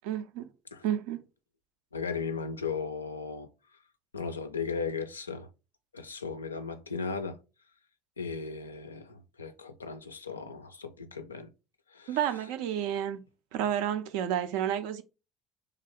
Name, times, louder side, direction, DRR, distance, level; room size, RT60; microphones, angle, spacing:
voice 1, 0.0-0.5 0.8-1.2 12.1-13.2 13.5-15.0, right 10 dB, 65° right, 0.3 m, -30 dB
voice 2, 1.9-3.5 4.1-5.5 5.9-7.4 8.2-11.5 11.9-12.2, left 5 dB, 85° left, 0.3 m, -36 dB
3.3 x 2.7 x 3.7 m
figure-of-eight pair, 55°, 0 cm